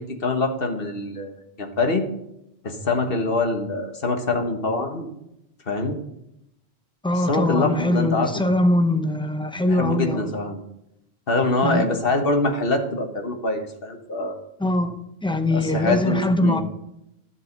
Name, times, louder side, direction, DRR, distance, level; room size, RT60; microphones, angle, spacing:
voice 1, 0.0-2.0 2.6-5.1 5.7-6.0 7.1-8.4 9.7-10.6 11.3-14.3 15.5-16.6, left 2 dB, 60° left, 4 dB, 1.6 m, -24 dB
voice 2, 7.0-10.3 11.6-11.9 14.6-15.0 15.2-16.6, left 1 dB, 5° left, 7 dB, 0.7 m, -22 dB
12.5 x 7.6 x 5.3 m, 0.82 s
omnidirectional pair, 1.1 m